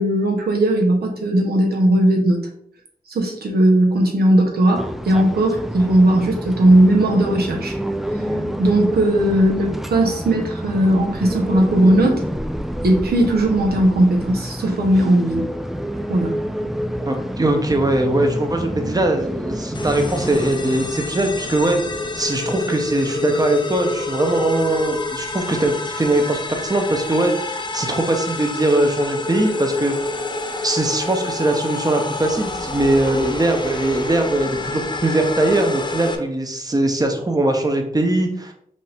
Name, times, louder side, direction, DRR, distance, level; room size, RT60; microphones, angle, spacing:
voice 1, 0.0-2.4 3.1-7.8 8.6-12.2 12.8-15.5 16.1-16.3, right 1 dB, 80° right, 1 dB, 1.1 m, -17 dB
sound 1, 4.8-20.5, equal, ahead, 0.3 m, -28 dB
voice 2, 17.1-21.8 22.2-29.9 30.6-38.5, right 1 dB, 25° right, 4 dB, 0.9 m, -21 dB
sound 2, 19.7-36.2, left 2 dB, 30° left, 0.6 m, -28 dB
5.2 x 2.8 x 3.5 m, 0.66 s
wide cardioid pair, 85°, 16 cm